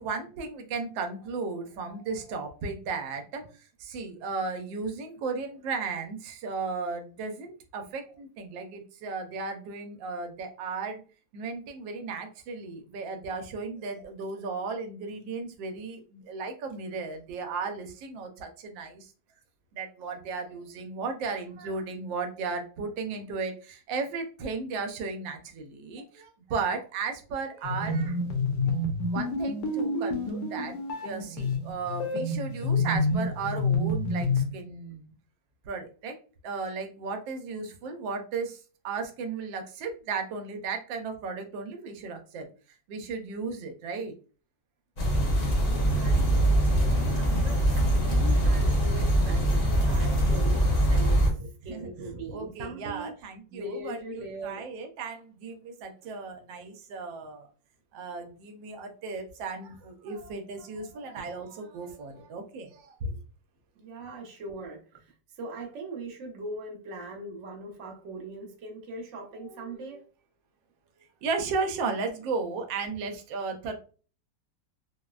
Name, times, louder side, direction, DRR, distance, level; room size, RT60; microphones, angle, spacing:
voice 1, 0.0-11.0 11.3-19.1 19.7-28.2 28.7-28.8 29.1-30.7 31.0-35.1 35.6-36.1 36.4-42.5 42.9-44.1 49.8-50.3 51.7-57.5 57.9-63.2 69.5-70.0 71.2-73.7, right 4 dB, 85° right, 5 dB, 1.3 m, -35 dB
sound 1, 27.6-34.5, left 2 dB, 75° left, 1.3 m, -28 dB
sound 2, 45.0-51.3, right 1 dB, 45° left, 0.8 m, -23 dB
voice 2, 45.6-53.1 53.5-54.7 63.8-70.0, right 2 dB, 55° right, 1 dB, 0.9 m, -41 dB
3.7 x 2.0 x 2.3 m, 0.38 s
omnidirectional pair, 2.0 m